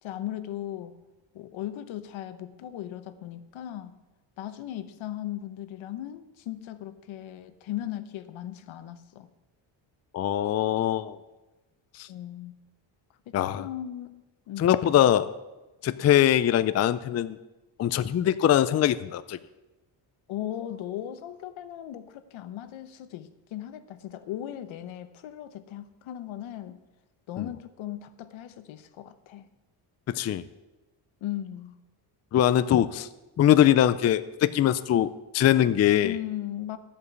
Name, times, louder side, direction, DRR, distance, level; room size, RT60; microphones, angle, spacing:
voice 1, 0.0-0.9 1.3-3.9 4.4-9.3 12.1-12.6 13.3-15.0 20.3-26.8 27.3-29.5 31.2-31.7 36.0-36.8, left 12 dB, 80° left, 11 dB, 1.0 m, -37 dB
voice 2, 10.1-11.2 12.0-12.1 13.3-13.7 14.6-15.3 15.8-17.4 17.8-19.4 30.1-30.4 32.3-33.1 33.4-35.1 35.3-36.1, left 11 dB, 35° left, 13 dB, 0.4 m, -22 dB
13.5 x 5.3 x 8.0 m, 1.1 s
cardioid pair, 120°, 47 cm